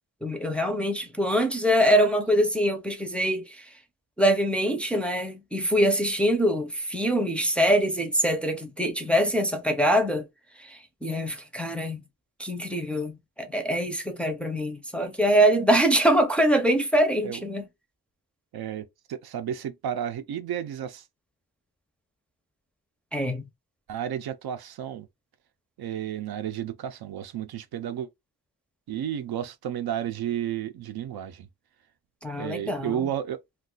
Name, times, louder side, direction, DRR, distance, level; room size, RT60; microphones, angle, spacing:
voice 1, 0.2-3.7 4.2-10.3 10.6-12.0 12.4-17.6 23.1-23.5 32.2-33.1, equal, 5° left, 0.5 m, -24 dB
voice 2, 18.5-21.0 23.9-25.1 25.8-28.1 28.9-31.5 32.4-33.4, right 10 dB, 75° right, 0.5 m, -32 dB
2.4 x 2.3 x 3.8 m
wide cardioid pair, 135°, 37 cm